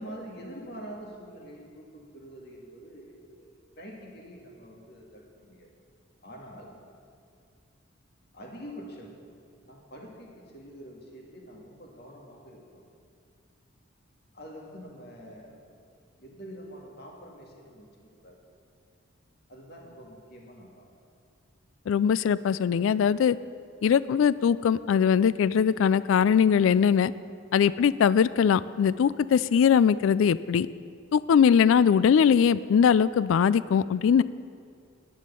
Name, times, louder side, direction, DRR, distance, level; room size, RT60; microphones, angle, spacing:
voice 1, 0.0-5.7 6.2-6.7 8.3-9.2 9.6-12.9 14.3-15.6 16.2-18.4 19.5-20.9, equal, 50° left, -1 dB, 2.0 m, -45 dB
voice 2, 21.9-23.4 23.8-27.1 27.5-30.7 31.1-34.2, left 7 dB, 70° left, 17 dB, 0.3 m, -21 dB
10.5 x 9.5 x 6.8 m, 2.3 s
head